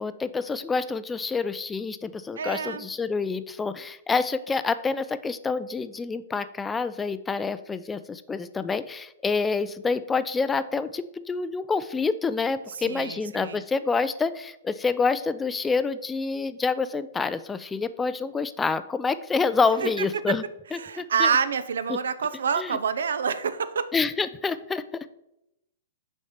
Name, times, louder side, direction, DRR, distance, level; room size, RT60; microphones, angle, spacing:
voice 1, 0.0-20.4 20.7-21.3 21.9-22.0 22.6-22.8 23.9-25.1, left 4 dB, 10° left, 14 dB, 0.3 m, -27 dB
voice 2, 2.4-2.9 12.8-13.6 19.8-20.1 20.7-23.9, right 6 dB, 90° right, 13 dB, 0.7 m, -27 dB
6.5 x 4.2 x 6.5 m, 0.83 s
hypercardioid pair, 155°, 0 cm